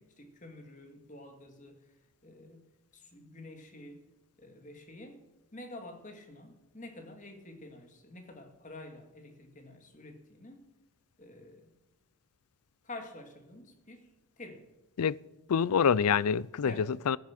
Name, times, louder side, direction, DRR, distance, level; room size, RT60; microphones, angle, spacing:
voice 1, 0.0-1.8 2.2-2.6 2.9-4.0 4.4-5.2 5.5-10.7 11.2-11.7 12.8-14.1 14.4-14.7 16.6-16.9, left 2 dB, 35° left, 2.1 m, -48 dB
voice 2, 15.5-17.2, left 7 dB, 90° left, 0.4 m, -26 dB
14.5 x 11.0 x 6.0 m
head